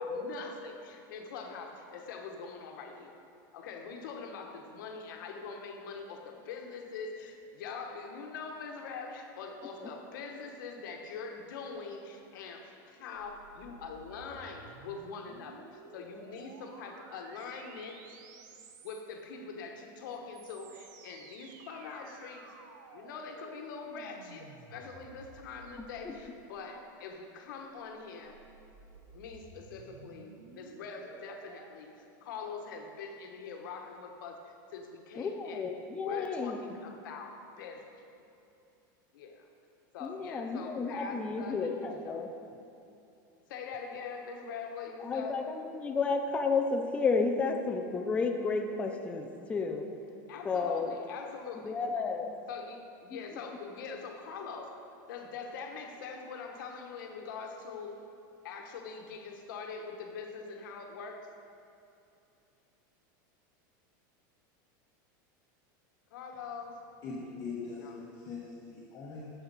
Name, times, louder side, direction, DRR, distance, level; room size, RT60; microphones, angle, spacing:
voice 1, 0.0-3.1 3.5-18.0 18.8-22.5 22.9-28.4 29.1-35.6 36.0-38.0 39.1-39.5 39.9-42.2 43.5-45.4 50.3-51.8 52.5-54.8 55.1-58.0 58.4-61.3 66.1-66.8 67.8-68.0, left 5 dB, 80° left, 3 dB, 1.1 m, -43 dB
sound 1, 13.1-19.2 20.1-26.7 27.8-31.7, right 4 dB, 65° right, 0.8 m, -54 dB
voice 2, 25.8-26.1 35.2-36.6 40.0-42.3 45.0-49.9 50.4-50.9 51.6-52.4, left 4 dB, 10° left, 3 dB, 0.4 m, -32 dB
voice 3, 67.0-69.3, left 4 dB, 30° left, -6 dB, 1.1 m, -41 dB
9.6 x 6.9 x 4.0 m, 2.8 s
supercardioid pair, 155°, 11 cm